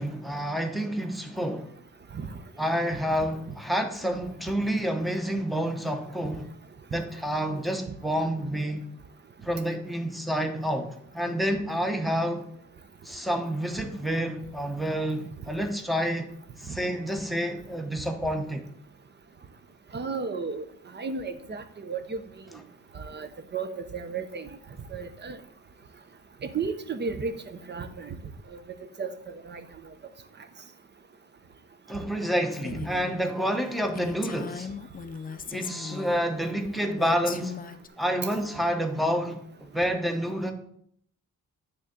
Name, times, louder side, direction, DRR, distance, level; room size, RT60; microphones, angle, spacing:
voice 1, 0.0-1.7 2.6-6.5 6.9-8.9 9.4-12.5 13.0-16.3 16.6-18.7 31.9-34.7 35.5-37.6 38.0-40.5, equal, ahead, 0.9 m, -29 dB
voice 2, 19.9-20.6 20.9-22.2 23.0-23.3 23.5-24.5 24.9-25.4 26.4-27.4 27.7-28.2 29.0-29.1 29.5-29.6 32.7-32.8, right 5 dB, 35° right, 0.6 m, -33 dB
Female speech woman speaking, 32.5-33.1 33.5-33.6 33.9-36.2 37.0-37.9, left 6 dB, 30° left, 0.5 m, -38 dB
9.2 x 3.7 x 6.6 m
wide cardioid pair, 140°, 31 cm